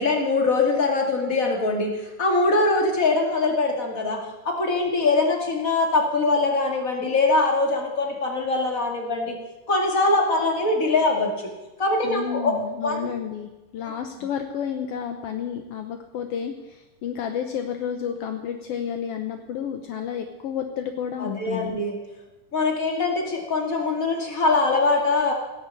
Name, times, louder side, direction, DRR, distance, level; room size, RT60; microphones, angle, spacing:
voice 1, 0.0-1.9 2.2-4.2 4.4-9.3 9.7-11.3 11.8-12.6 12.8-13.1 13.8-13.9 21.2-22.0 22.5-25.3, left 3 dB, 25° left, 1 dB, 2.4 m, -22 dB
voice 2, 12.0-21.8, left 8 dB, 75° left, 6 dB, 1.4 m, -31 dB
17.0 x 8.0 x 8.3 m, 1.1 s
omnidirectional pair, 3.8 m